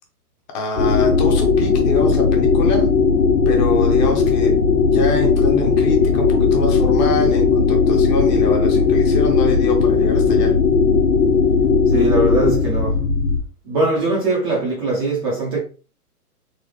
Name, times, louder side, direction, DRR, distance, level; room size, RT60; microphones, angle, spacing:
voice 1, 0.5-2.9 3.5-4.6 4.8-10.5, left 3 dB, 30° left, 0.7 m, -26 dB
sound 1, 0.8-13.4, left 5 dB, 85° left, 0.8 m, -16 dB
voice 2, 11.9-13.0 13.7-15.6, right 2 dB, 20° right, 0.5 m, -21 dB
4.0 x 2.1 x 3.1 m
hypercardioid pair, 135°, 46 cm